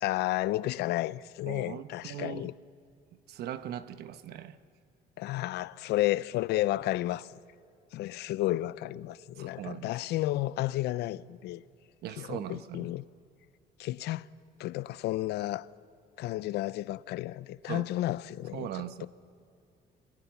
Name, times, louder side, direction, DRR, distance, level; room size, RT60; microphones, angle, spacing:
voice 1, 0.0-2.5 5.2-7.3 7.9-11.6 12.2-13.0 13.8-14.2 14.6-15.7 16.2-18.7 19.0-19.1, left 16 dB, 80° left, 0.6 m, -32 dB
voice 2, 1.4-2.5 3.3-4.6 9.4-9.9 12.0-12.9 17.6-17.9 18.5-19.1, right 11 dB, 70° right, 1.1 m, -39 dB
27.5 x 23.0 x 7.1 m
cardioid pair, 110°, 17 cm